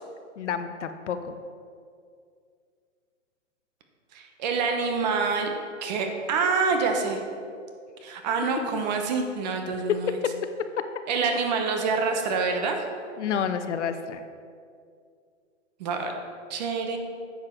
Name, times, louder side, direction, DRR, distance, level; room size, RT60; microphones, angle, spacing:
voice 1, 0.4-1.3 8.7-8.8 9.9-10.4 13.2-14.2, left 8 dB, 65° left, 9 dB, 0.8 m, -29 dB
voice 2, 4.1-5.5 5.8-7.2 8.0-10.2 11.1-12.8 15.8-16.1 16.5-17.0, right 4 dB, 35° right, 4 dB, 1.1 m, -26 dB
9.8 x 7.2 x 4.6 m, 2.3 s
hypercardioid pair, 150°, 38 cm